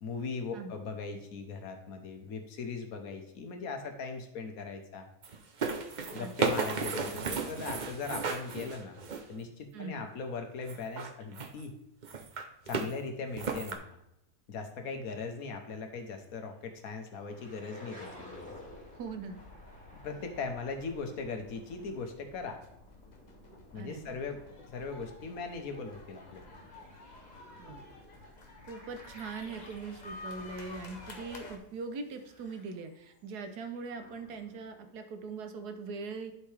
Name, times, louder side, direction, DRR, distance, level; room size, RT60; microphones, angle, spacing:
voice 1, 0.0-5.1 6.1-9.0 9.3-11.7 12.7-13.8 14.5-18.4 20.0-22.6 23.7-24.4 24.7-26.4, left 4 dB, 65° left, 5 dB, 1.3 m, -39 dB
sound 1, 5.2-9.4 10.6-11.6 12.0-12.9 13.4-13.8, right 5 dB, 50° right, 0.5 m, -34 dB
voice 2, 9.7-10.1 18.9-19.4 23.7-24.2 27.6-27.8 28.7-36.3, right 4 dB, 80° right, 7 dB, 1.4 m, -41 dB
sound 2, 15.4-15.8 16.3-16.4 17.0-31.4 31.8-34.9, left 1 dB, 5° left, 3.0 m, -55 dB
sound 3, 18.3-31.6, left 2 dB, 40° left, 0.7 m, -51 dB
11.0 x 4.6 x 3.3 m, 0.82 s
omnidirectional pair, 1.7 m